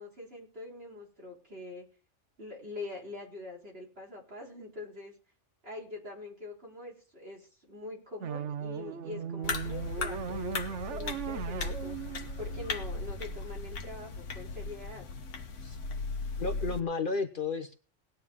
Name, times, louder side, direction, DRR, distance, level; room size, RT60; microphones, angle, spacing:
voice 1, 0.0-1.9 2.4-5.2 5.6-12.0 12.4-15.0, left 2 dB, 55° right, -2 dB, 4.2 m, -44 dB
sound 1, 8.2-13.3, right 7 dB, 75° right, 1.2 m, -38 dB
sound 2, 9.4-16.8, left 3 dB, 80° left, 1.3 m, -37 dB
voice 2, 16.4-17.7, left 4 dB, 45° left, 8 dB, 1.0 m, -32 dB
18.5 x 9.2 x 3.7 m, 0.37 s
omnidirectional pair, 1.3 m